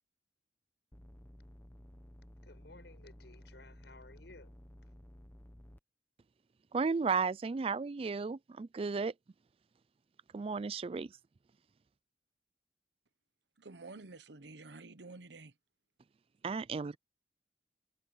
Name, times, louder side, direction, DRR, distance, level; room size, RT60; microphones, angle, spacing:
sound 1, 0.9-5.8, equal, 10° left, 0.8 m, -55 dB
voice 1, 2.4-4.5, left 2 dB, 80° left, 6.2 m, -56 dB
voice 2, 6.7-9.1 10.3-11.1 16.4-17.0, right 5 dB, 35° right, 0.3 m, -34 dB
voice 3, 13.6-15.5, right 3 dB, 85° right, 1.1 m, -50 dB
head